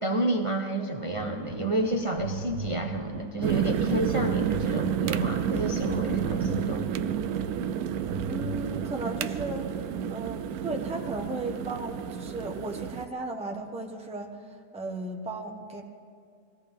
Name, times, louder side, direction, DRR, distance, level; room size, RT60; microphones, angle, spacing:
voice 1, 0.0-6.9, right 2 dB, 35° right, 3 dB, 0.5 m, -30 dB
sound 1, 1.2-9.0, right 2 dB, 90° right, 2.1 m, -39 dB
sound 2, 3.4-13.1, right 8 dB, 70° right, 1.0 m, -30 dB
voice 2, 8.3-9.6 10.1-14.4 14.7-15.8, right 2 dB, 5° right, 0 dB, 1.2 m, -35 dB
20.5 x 16.5 x 3.6 m, 2.3 s
omnidirectional pair, 1.8 m